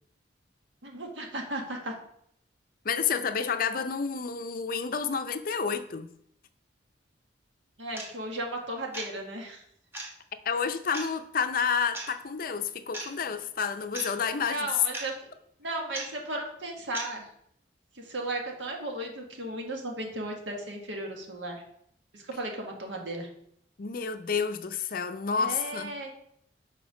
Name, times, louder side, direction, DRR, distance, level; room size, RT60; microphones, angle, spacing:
voice 1, 0.8-1.9 7.8-9.6 14.5-15.2 15.6-17.3 17.9-21.6 22.1-23.3 25.4-26.1, right 1 dB, 80° right, 1 dB, 1.6 m, -35 dB
voice 2, 2.8-6.1 10.5-14.7 23.8-25.9, left 6 dB, 50° left, 10 dB, 0.5 m, -30 dB
sound 1, 7.9-8.1 8.9-9.1 9.9-10.1 10.9-11.1 11.9-12.1 12.9-13.1 13.9-14.1 14.9-15.1 15.9-16.1 16.9-17.1, right 2 dB, 15° right, 1.2 m, -36 dB
6.9 x 4.5 x 5.1 m, 0.70 s
head